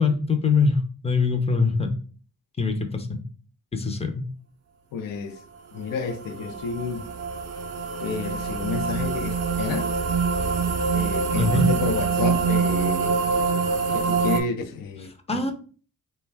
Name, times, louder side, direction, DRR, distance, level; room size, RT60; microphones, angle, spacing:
voice 1, 0.0-1.9 2.6-3.2 3.7-4.3 11.4-11.7 15.3-15.5, left 4 dB, 20° left, 0.5 m, -23 dB
voice 2, 4.9-5.4 5.7-7.1 8.0-9.9 10.9-13.2 13.9-15.5, left 5 dB, 80° left, 0.5 m, -31 dB
sound 1, 5.9-14.4, right 5 dB, 50° right, 0.5 m, -25 dB
2.4 x 2.2 x 3.2 m
cardioid pair, 85°, 33 cm